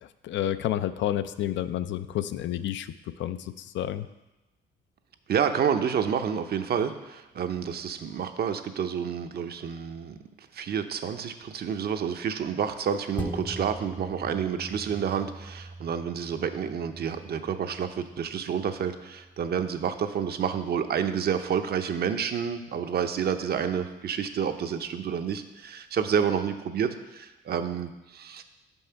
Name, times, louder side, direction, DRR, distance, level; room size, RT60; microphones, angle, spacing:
voice 1, 0.2-2.9 3.2-4.1, left 12 dB, 70° left, 12 dB, 0.4 m, -30 dB
voice 2, 5.3-10.2 10.5-28.4, right 7 dB, 55° right, 8 dB, 0.6 m, -29 dB
sound 1, 13.2-22.0 22.4-22.5, right 1 dB, 10° left, 0.5 m, -42 dB
5.8 x 5.4 x 5.6 m, 1.1 s
cardioid pair, 90°, 20 cm